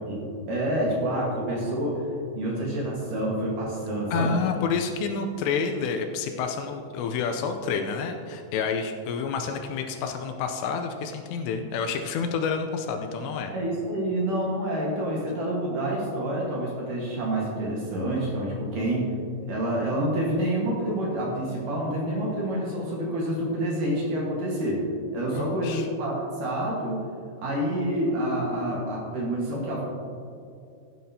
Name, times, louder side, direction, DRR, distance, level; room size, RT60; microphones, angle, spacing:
voice 1, 0.1-2.0 2.4-4.3 13.5-19.1 19.5-24.9 25.1-27.0 27.4-29.8, right 1 dB, 60° right, -3 dB, 2.6 m, -28 dB
voice 2, 4.1-13.5 25.3-25.9, left 5 dB, 80° left, 5 dB, 2.7 m, -29 dB
16.0 x 9.4 x 2.8 m, 2.5 s
omnidirectional pair, 5.2 m